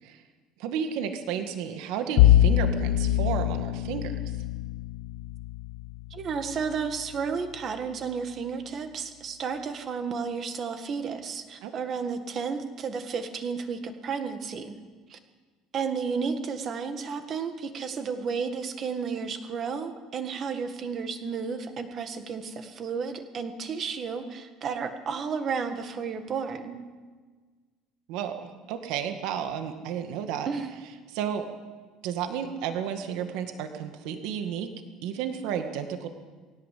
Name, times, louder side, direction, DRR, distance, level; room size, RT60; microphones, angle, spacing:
voice 1, 0.6-4.2 11.6-11.7 28.1-28.4 28.7-30.5 31.1-31.4 32.0-34.7 35.0-36.1, right 8 dB, 60° right, 6 dB, 2.0 m, -32 dB
Bowed string instrument, 2.2-7.3, left 12 dB, 65° left, 1.0 m, -24 dB
voice 2, 6.1-14.8 15.1-15.2 15.7-26.8 30.5-30.7, right 5 dB, 30° right, 8 dB, 1.7 m, -32 dB
21.0 x 17.0 x 8.5 m, 1.4 s
cardioid pair, 180°, 0 cm